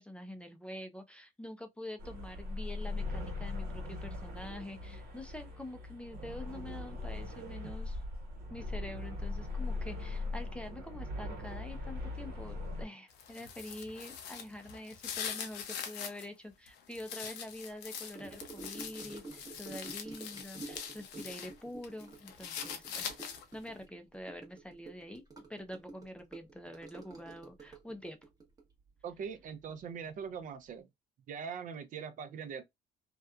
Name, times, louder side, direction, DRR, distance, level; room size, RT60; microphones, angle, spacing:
voice 1, 0.0-8.0 8.5-23.2 23.5-25.2 25.5-28.3, left 1 dB, 5° left, 0.4 m, -46 dB
sound 1, 2.0-12.8, left 2 dB, 75° right, 1.2 m, -40 dB
sound 2, 13.1-16.2 16.7-21.5 21.8-23.6, left 7 dB, 85° left, 0.7 m, -43 dB
Gurgling / Sink (filling or washing) / Trickle dribble, 18.1-29.8 30.1-30.4 30.7-30.8, right 3 dB, 20° right, 0.9 m, -50 dB
voice 2, 29.0-30.9 31.3-32.6, right 6 dB, 50° right, 0.5 m, -42 dB
2.8 x 2.2 x 2.3 m
cardioid pair, 110°, 17 cm